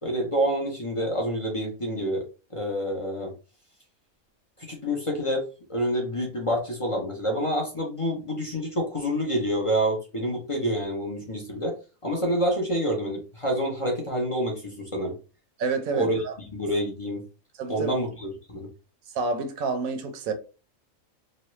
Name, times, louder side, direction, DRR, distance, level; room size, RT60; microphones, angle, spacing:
voice 1, 0.0-2.3 2.5-3.3 4.6-5.4 5.7-11.7 12.0-15.1 15.9-16.2 16.5-17.2 17.7-18.7, equal, 30° left, 0.6 m, -27 dB
voice 2, 15.6-16.4 17.6-17.9 19.1-20.3, right 4 dB, 80° right, 1.1 m, -28 dB
3.1 x 2.2 x 3.0 m
omnidirectional pair, 1.5 m